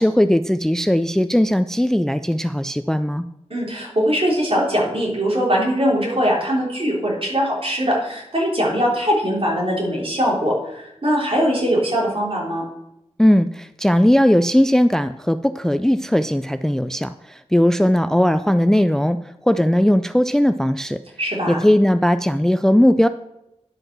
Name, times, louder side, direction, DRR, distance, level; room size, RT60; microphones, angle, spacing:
voice 1, 0.0-3.3 13.2-19.2 19.5-21.0 21.5-23.1, equal, 5° left, 12 dB, 0.3 m, -18 dB
voice 2, 3.5-12.6 21.2-21.6, equal, 55° right, -3 dB, 3.4 m, -21 dB
10.5 x 5.3 x 6.0 m, 0.89 s
wide cardioid pair, 70°, 12 cm